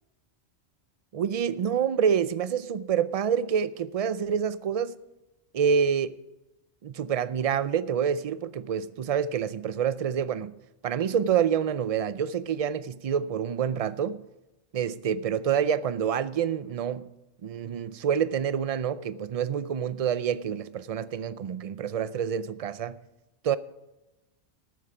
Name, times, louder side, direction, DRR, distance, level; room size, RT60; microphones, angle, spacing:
voice 1, 1.1-5.0 5.5-6.2 6.8-10.5 10.8-14.2 14.7-17.1 17.4-23.0 23.4-23.6, right 8 dB, 50° right, 0.4 m, -27 dB
12.5 x 9.5 x 4.9 m
omnidirectional pair, 1.2 m